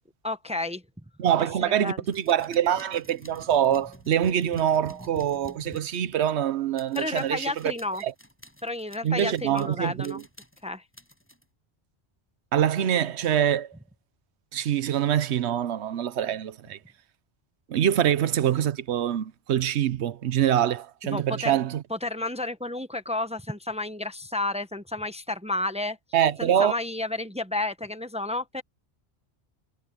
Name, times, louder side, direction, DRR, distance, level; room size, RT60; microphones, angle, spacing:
voice 1, 0.2-0.8 1.8-2.0 7.0-8.0 8.6-10.2 10.6-10.8 21.1-21.6 21.9-26.0 26.4-28.6, left 2 dB, 5° right, 0.8 m, -31 dB
voice 2, 1.2-7.7 8.0-8.1 9.0-10.2 12.5-13.7 14.5-16.8 17.7-21.8 26.1-26.7, right 10 dB, 85° right, 1.0 m, -25 dB
sound 1, 2.1-6.4 6.7-9.8 10.0-11.4, equal, 10° left, 7.8 m, -49 dB
omnidirectional pair, 1.1 m